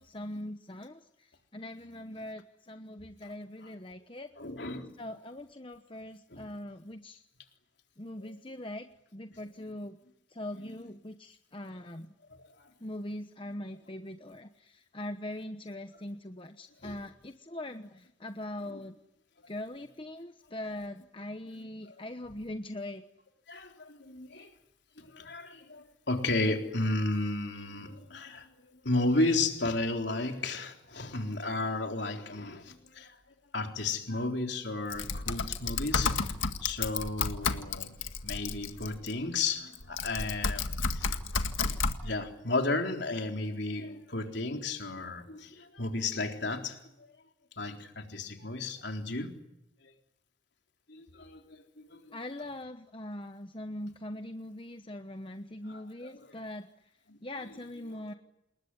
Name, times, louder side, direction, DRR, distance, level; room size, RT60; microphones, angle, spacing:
voice 1, 0.0-4.3 5.0-7.2 8.0-10.0 10.3-12.1 12.8-18.9 19.5-23.0 52.1-56.7 57.2-58.1, left 1 dB, 25° left, 7 dB, 1.1 m, -41 dB
voice 2, 4.4-5.0 6.3-6.5 8.2-8.4 16.8-17.0 18.7-18.8 21.9-22.0 23.5-24.5 25.0-33.1 33.5-36.2 36.6-37.9 38.2-40.7 40.9-41.1 42.0-46.8 47.6-49.4 50.9-52.1 55.7-55.8 57.1-57.2 57.9-58.2, left 2 dB, 60° left, 3 dB, 3.9 m, -33 dB
Typing, 34.9-39.1 39.7-42.0, left 4 dB, 80° left, 1.9 m, -32 dB
28.5 x 21.0 x 9.8 m, 0.84 s
head